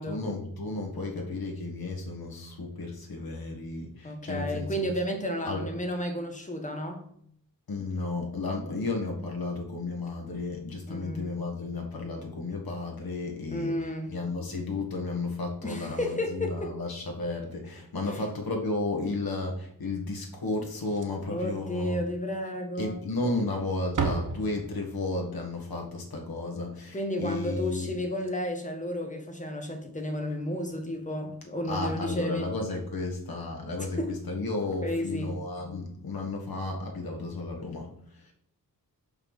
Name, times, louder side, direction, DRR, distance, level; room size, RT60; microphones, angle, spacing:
voice 1, 0.0-4.9 5.4-5.7 7.7-22.0 22.8-27.9 31.6-38.3, left 2 dB, 75° left, 1 dB, 1.8 m, -33 dB
voice 2, 4.0-7.0 10.9-11.3 13.5-14.1 15.6-16.8 21.3-23.0 26.9-32.5 34.0-34.1 34.8-35.3, left 1 dB, 20° left, 3 dB, 1.5 m, -32 dB
Slam, 20.7-21.4 21.7-21.8 22.3-22.4 23.2-23.5 23.8-25.1 27.8-27.9 28.1-28.3 29.8-30.0, right 5 dB, 60° right, 1.0 m, -34 dB
5.5 x 5.5 x 6.5 m, 0.67 s
wide cardioid pair, 140°, 36 cm